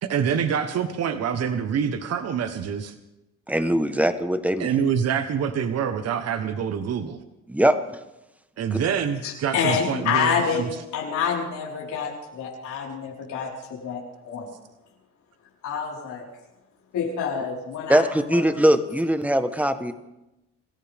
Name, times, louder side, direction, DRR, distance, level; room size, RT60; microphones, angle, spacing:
voice 1, 0.0-2.9 4.6-7.2 8.6-10.7, right 7 dB, 60° right, 9 dB, 1.2 m, -26 dB
voice 2, 3.5-4.7 7.5-7.8 8.7-8.8 17.9-19.9, right 1 dB, 5° right, 10 dB, 1.2 m, -21 dB
voice 3, 9.2-10.6 10.9-14.5 15.6-16.3 16.9-18.0 18.3-18.4, left 7 dB, 85° left, -3 dB, 4.6 m, -27 dB
26.5 x 14.0 x 3.6 m, 0.95 s
cardioid pair, 100°, 29 cm